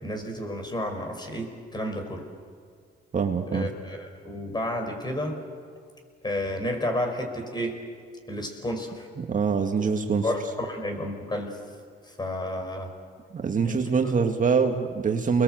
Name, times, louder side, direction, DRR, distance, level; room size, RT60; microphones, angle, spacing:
voice 1, 0.0-2.3 3.5-5.4 6.2-7.8 8.3-9.1 10.2-11.6 12.1-12.9 13.6-13.8, left 1 dB, 20° left, 4 dB, 5.4 m, -31 dB
voice 2, 3.1-3.7 9.3-10.2 13.3-15.4, right 5 dB, 40° right, 4 dB, 2.0 m, -24 dB
29.5 x 21.5 x 7.9 m, 2.1 s
cardioid pair, 90°, 20 cm